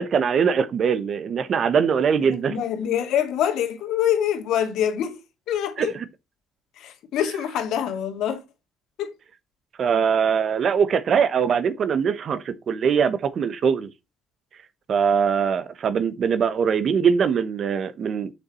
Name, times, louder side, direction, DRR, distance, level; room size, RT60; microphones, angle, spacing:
voice 1, 0.0-2.6 5.8-5.9 9.8-13.9 14.9-18.3, right 6 dB, 40° right, 0.9 m, -22 dB
voice 2, 2.2-5.2 5.5-5.9 6.8-8.4 9.0-9.2, left 10 dB, 75° left, 2.2 m, -25 dB
6.9 x 6.5 x 4.3 m
cardioid pair, 170°, 0 cm